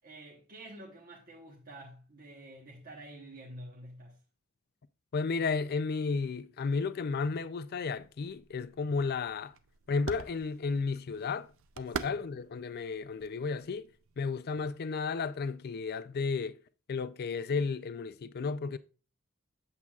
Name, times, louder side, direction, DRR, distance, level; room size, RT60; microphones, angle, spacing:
voice 1, 0.0-4.2 11.9-12.2, right 1 dB, 40° right, 1.1 m, -49 dB
voice 2, 5.1-9.5 9.9-11.5 11.8-13.9 14.2-16.6 16.9-18.8, left 4 dB, 45° left, 0.4 m, -33 dB
sound 1, 7.9-14.2, right 6 dB, 60° right, 0.5 m, -46 dB
8.2 x 7.2 x 2.4 m
head